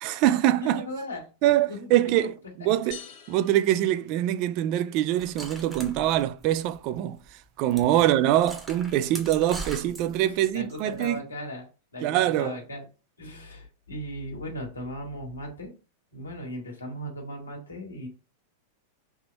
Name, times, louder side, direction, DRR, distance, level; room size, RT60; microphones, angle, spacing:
voice 1, 0.0-0.9 1.4-3.0 3.3-7.2 7.6-11.2 12.0-12.6, right 13 dB, 45° right, 0.4 m, -24 dB
voice 2, 0.6-1.3 1.7-1.9 7.9-8.1 10.5-11.7 11.9-12.9 13.2-15.7 16.1-18.1, equal, 85° left, 1.5 m, -37 dB
sound 1, 2.9-4.8, left 9 dB, 50° left, 0.9 m, -47 dB
sound 2, 5.2-7.0 7.3-7.4 7.7-7.9 8.3-11.1, right 3 dB, 10° right, 1.0 m, -41 dB
3.4 x 2.8 x 4.5 m
figure-of-eight pair, 95°, 0 cm